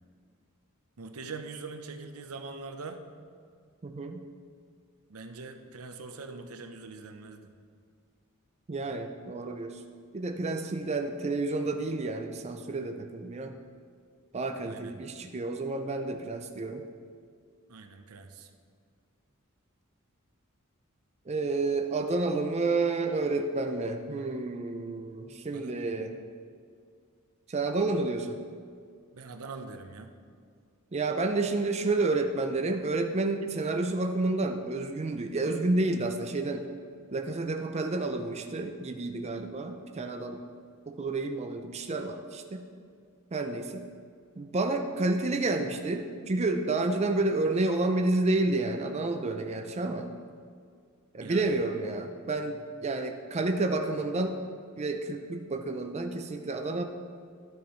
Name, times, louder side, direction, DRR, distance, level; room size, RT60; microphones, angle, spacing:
voice 1, 1.0-3.0 5.1-7.5 14.6-15.0 17.7-18.5 25.5-25.9 29.1-30.1 33.4-33.6 51.2-51.6, right 4 dB, 85° right, 6 dB, 0.7 m, -43 dB
voice 2, 3.8-4.2 8.7-9.8 10.1-13.5 14.3-16.8 21.3-26.2 27.5-28.4 30.9-36.6 37.1-40.4 40.9-42.7 43.3-43.9 44.4-50.1 51.1-54.3 54.8-56.8, right 2 dB, 30° right, 5 dB, 0.4 m, -30 dB
12.0 x 7.2 x 3.1 m, 2.2 s
head